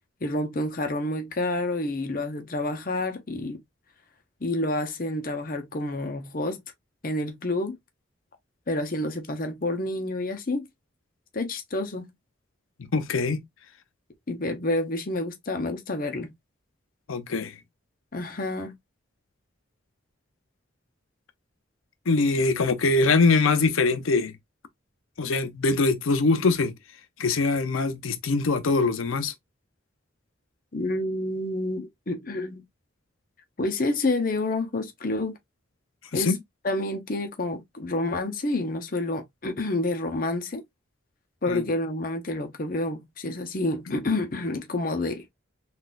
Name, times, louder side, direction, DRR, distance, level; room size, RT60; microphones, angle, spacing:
voice 1, 0.2-3.6 4.4-6.6 7.0-7.8 8.7-10.6 11.3-12.1 14.3-16.3 18.1-18.7 30.7-32.6 33.6-35.3 36.1-36.3 36.6-40.6 41.4-45.3, left 2 dB, 45° left, 0.7 m, -29 dB
voice 2, 12.9-13.4 17.1-17.5 22.1-24.3 25.2-26.7 27.2-29.3 36.1-36.4 41.5-41.6, left 3 dB, 85° left, 0.6 m, -23 dB
3.9 x 2.4 x 2.4 m
head